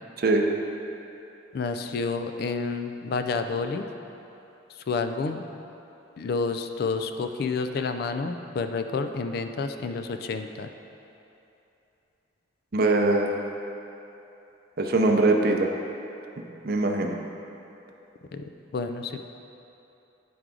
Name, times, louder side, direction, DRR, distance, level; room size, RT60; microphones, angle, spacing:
voice 1, 1.5-3.9 4.7-5.4 6.2-10.7 18.3-19.2, left 4 dB, 50° left, 7 dB, 0.3 m, -29 dB
voice 2, 12.7-13.4 14.8-15.7 16.4-17.2, right 2 dB, 50° right, 1 dB, 0.6 m, -22 dB
9.4 x 4.7 x 3.8 m, 2.9 s
head